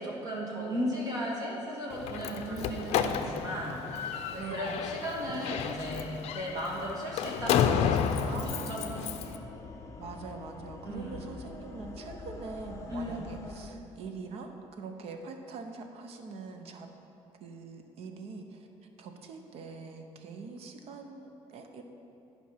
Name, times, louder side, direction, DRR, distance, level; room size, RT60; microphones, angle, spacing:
voice 1, 0.0-6.1 6.3-9.5 10.8-11.4 12.9-13.3, equal, 35° right, -4 dB, 1.7 m, -36 dB
Slam, 1.9-9.4, left 8 dB, 65° left, 0.5 m, -31 dB
voice 2, 2.3-3.2 4.3-4.8 8.2-8.9 10.0-16.9 17.4-21.8, right 4 dB, 60° right, 5 dB, 0.8 m, -43 dB
sound 1, 4.8-13.7, left 4 dB, 25° left, 0.7 m, -48 dB
10.5 x 5.0 x 5.7 m, 2.9 s
cardioid pair, 155°, 11 cm